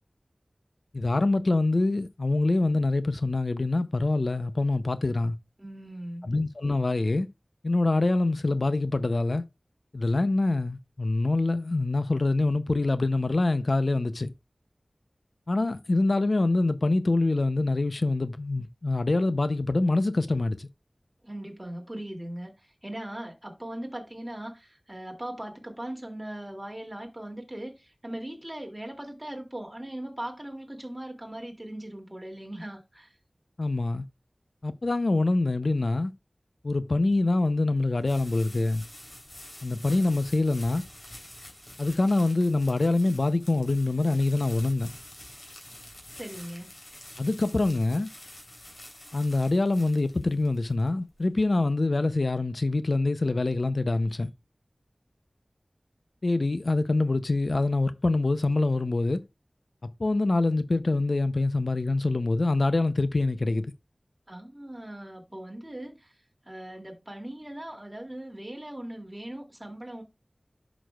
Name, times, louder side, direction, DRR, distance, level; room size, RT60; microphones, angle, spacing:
voice 1, 0.9-5.4 6.3-7.3 7.6-9.4 9.9-14.3 15.5-20.7 33.6-34.1 34.6-36.1 36.6-38.8 39.6-40.8 41.8-44.9 47.2-48.1 49.1-54.3 56.2-59.2 60.0-63.7, left 2 dB, 65° left, 0.5 m, -25 dB
voice 2, 5.6-6.3 21.2-33.1 46.1-46.7 64.3-66.1 66.4-70.0, right 1 dB, 20° right, 2.4 m, -39 dB
sound 1, 36.9-51.7, left 1 dB, 50° left, 3.4 m, -48 dB
11.0 x 6.0 x 2.3 m
wide cardioid pair, 60°, 0 cm